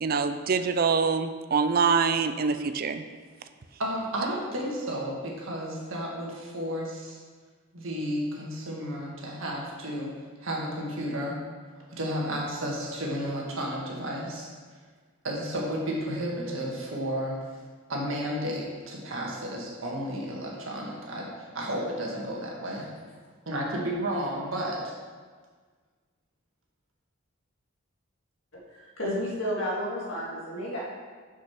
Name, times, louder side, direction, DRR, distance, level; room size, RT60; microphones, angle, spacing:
voice 1, 0.0-3.0, right 5 dB, 45° right, 9 dB, 0.4 m, -25 dB
voice 2, 3.8-7.2 7.7-10.1 10.4-11.4 11.9-14.8 15.2-17.4 17.9-22.8 23.4-24.9, equal, 65° right, -3 dB, 1.8 m, -32 dB
voice 3, 29.0-30.8, equal, 65° left, -5 dB, 2.2 m, -31 dB
6.2 x 5.7 x 5.9 m, 1.5 s
head